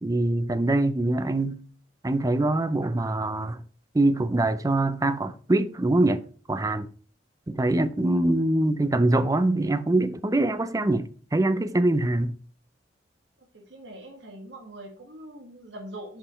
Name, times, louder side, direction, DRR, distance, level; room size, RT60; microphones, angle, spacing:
voice 1, 0.0-1.6 2.0-3.6 3.9-6.2 6.5-6.9 7.5-12.3, right 2 dB, 20° right, 0.5 m, -24 dB
voice 2, 13.5-16.2, right 1 dB, 80° right, 1.7 m, -42 dB
6.9 x 5.1 x 4.2 m
head